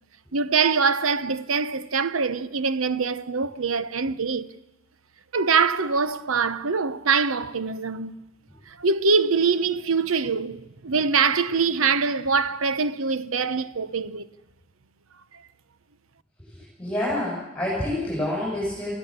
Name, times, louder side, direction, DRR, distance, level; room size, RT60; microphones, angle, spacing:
voice 1, 0.3-4.5 5.3-8.1 8.8-14.3, right 5 dB, 85° right, 1.0 m, -23 dB
voice 2, 16.5-18.9, left 1 dB, 5° left, 6.9 m, -28 dB
23.0 x 16.0 x 8.9 m
head